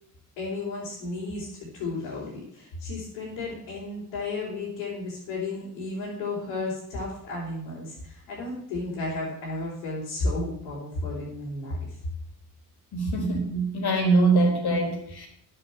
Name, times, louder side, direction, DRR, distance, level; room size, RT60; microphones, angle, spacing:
voice 1, 0.4-1.5 1.7-11.8, left 2 dB, 75° left, -9 dB, 4.3 m, -33 dB
voice 2, 12.9-15.3, right 3 dB, 50° left, 3 dB, 3.9 m, -23 dB
11.0 x 7.8 x 7.2 m, 0.70 s
hypercardioid pair, 45°, 48 cm